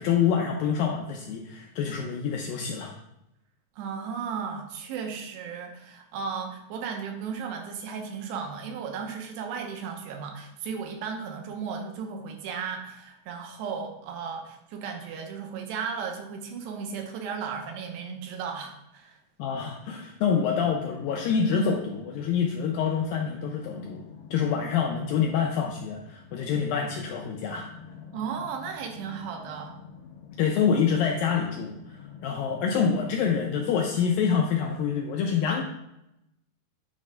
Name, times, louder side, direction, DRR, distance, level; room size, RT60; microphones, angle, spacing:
voice 1, 0.0-2.9 19.4-24.0 24.3-27.7 30.4-35.6, left 7 dB, 90° left, 1 dB, 2.0 m, -26 dB
voice 2, 3.8-19.2 28.1-29.8, right 6 dB, 90° right, 3 dB, 3.1 m, -35 dB
sound 1, 20.4-34.7, left 6 dB, 60° left, 1.8 m, -46 dB
9.1 x 3.3 x 5.1 m, 0.84 s
omnidirectional pair, 4.7 m